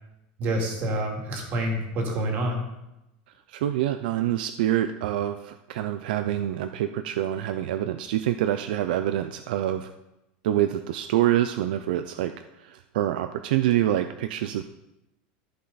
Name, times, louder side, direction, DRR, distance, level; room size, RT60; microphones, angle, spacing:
voice 1, 0.4-2.6, right 1 dB, 40° right, 1 dB, 2.3 m, -27 dB
voice 2, 3.5-9.9 10.4-12.3 12.6-14.6, right 12 dB, 80° right, 9 dB, 0.5 m, -26 dB
13.5 x 5.5 x 4.1 m, 0.91 s
supercardioid pair, 160°, 5 cm